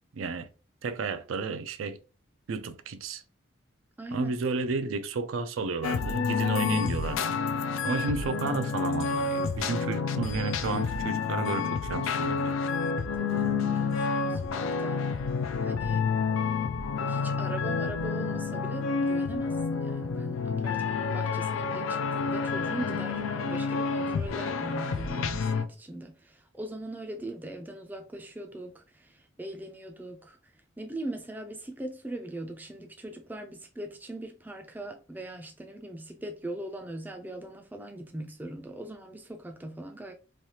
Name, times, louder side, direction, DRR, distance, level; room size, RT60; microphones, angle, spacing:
voice 1, 0.1-0.5 0.8-2.0 2.5-3.2 4.1-7.4 7.8-12.6, right 4 dB, 85° right, 0.4 m, -32 dB
voice 2, 4.0-4.3 13.2-15.0 15.6-16.1 17.0-30.4 30.8-40.1, right 1 dB, 10° right, 0.3 m, -40 dB
sound 1, 5.8-25.6, left 5 dB, 80° left, 0.3 m, -29 dB
3.2 x 2.3 x 2.8 m
head